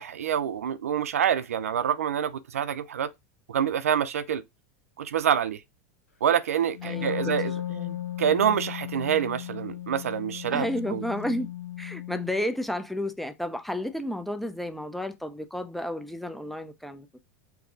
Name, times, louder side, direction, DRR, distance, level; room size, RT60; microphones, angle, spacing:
voice 1, 0.0-3.1 3.5-4.4 5.0-5.6 6.2-7.5 8.2-11.0, right 9 dB, 75° right, 0.4 m, -26 dB
Wind instrument woodwind instrument, 6.7-12.4, left 11 dB, 90° left, 0.9 m, -36 dB
voice 2, 6.8-8.0 10.5-11.5 11.8-17.1, left 1 dB, ahead, 0.6 m, -32 dB
4.6 x 2.3 x 3.7 m
figure-of-eight pair, 85°, 8 cm